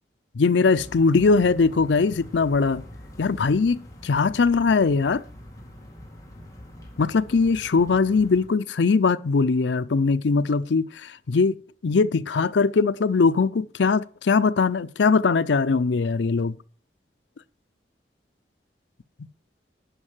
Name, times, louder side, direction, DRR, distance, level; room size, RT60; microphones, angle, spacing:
voice 1, 0.3-2.8 3.2-5.2 7.0-11.5 11.8-16.6, left 4 dB, 90° left, 0.5 m, -21 dB
sound 1, 0.7-8.5, left 1 dB, 20° left, 2.0 m, -44 dB
11.0 x 5.3 x 7.2 m
head